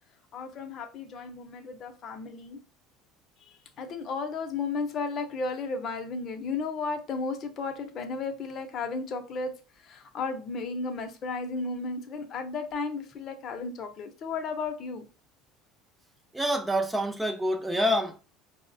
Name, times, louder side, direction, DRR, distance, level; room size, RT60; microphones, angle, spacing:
voice 1, 0.3-2.6 3.4-9.5 9.8-15.1, left 4 dB, 40° left, 0.6 m, -34 dB
voice 2, 16.3-18.2, equal, 5° right, 0.4 m, -27 dB
4.4 x 2.1 x 2.6 m
cardioid pair, 140°, 0 cm